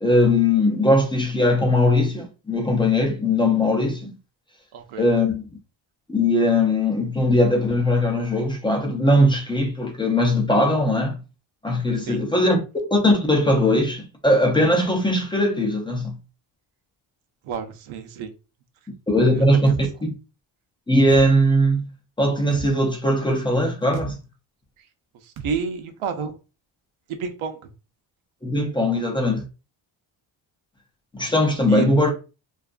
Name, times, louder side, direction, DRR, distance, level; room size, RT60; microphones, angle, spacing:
voice 1, 0.0-4.1 5.0-5.4 6.1-11.2 11.6-12.6 12.9-16.2 19.1-20.1 20.9-21.9 22.2-24.2 28.4-29.4 31.1-32.1, left 1 dB, 10° left, 0.6 m, -20 dB
voice 2, 4.7-5.1 12.0-12.3 17.4-18.3 19.3-19.7 24.8-24.9 25.1-26.4 27.1-27.7 31.7-31.9, right 6 dB, 80° right, 0.7 m, -31 dB
sound 1, 19.7-19.9 21.1-21.3 22.5-22.7 23.9-24.1 25.4-25.6, right 3 dB, 45° right, 0.4 m, -34 dB
2.7 x 2.4 x 2.4 m
cardioid pair, 125°, 49 cm